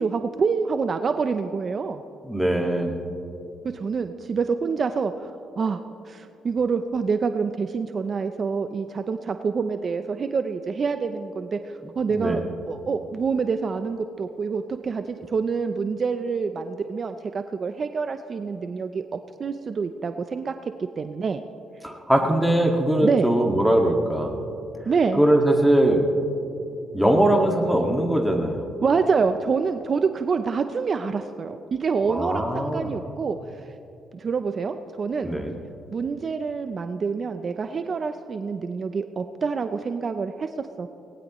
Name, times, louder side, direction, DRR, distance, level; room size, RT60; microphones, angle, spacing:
voice 1, 0.0-2.0 3.7-20.5 21.0-21.4 23.0-23.3 24.9-25.2 28.8-33.4 34.1-35.3 35.9-40.9, right 5 dB, 45° right, 8 dB, 0.6 m, -26 dB
voice 2, 2.2-3.0 12.1-12.4 21.8-24.4 25.2-26.0 26.9-28.6 32.1-32.9 35.2-35.5, right 1 dB, ahead, 2 dB, 1.9 m, -21 dB
19.5 x 18.5 x 3.1 m, 2.8 s
cardioid pair, 90°, 0 cm